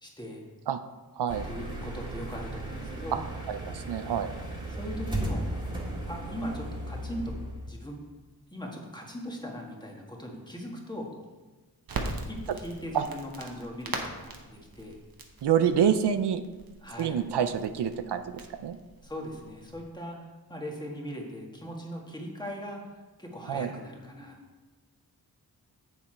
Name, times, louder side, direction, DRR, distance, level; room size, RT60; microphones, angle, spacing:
voice 1, 0.0-0.4 1.4-3.2 4.7-5.5 6.0-7.4 7.7-8.0 8.5-11.1 12.3-15.0 16.8-17.2 19.0-20.2 20.5-22.8 23.2-24.4, equal, 10° left, -1 dB, 1.7 m, -39 dB
sound 1, 1.3-7.7, right 1 dB, 10° right, 1.9 m, -36 dB
voice 2, 3.5-4.3 12.9-13.1 15.4-16.4 17.0-18.8 23.5-23.7, right 8 dB, 85° right, 10 dB, 0.6 m, -27 dB
Crackle, 11.9-19.8, right 3 dB, 60° right, 1.2 m, -41 dB
8.0 x 7.2 x 4.5 m, 1.2 s
wide cardioid pair, 105°, 39 cm